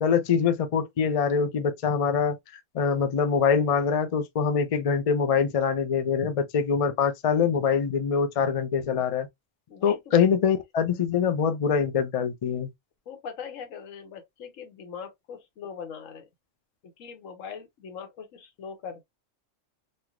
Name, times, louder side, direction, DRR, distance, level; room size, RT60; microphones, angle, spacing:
voice 1, 0.0-2.4 2.7-9.3 9.8-12.7, left 6 dB, 55° left, 0.4 m, -24 dB
voice 2, 9.7-10.3 13.1-16.3 17.0-19.0, left 6 dB, 90° left, 1.2 m, -41 dB
3.2 x 2.6 x 2.3 m
omnidirectional pair, 1.3 m